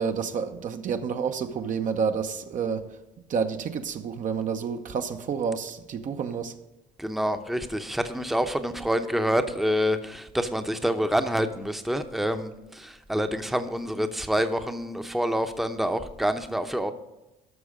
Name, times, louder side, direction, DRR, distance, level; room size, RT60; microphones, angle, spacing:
voice 1, 0.0-2.9 3.3-6.5, right 6 dB, 50° right, 0.8 m, -29 dB
voice 2, 7.0-16.9, equal, ahead, 0.8 m, -27 dB
13.0 x 6.1 x 5.1 m
supercardioid pair, 75°, 17 cm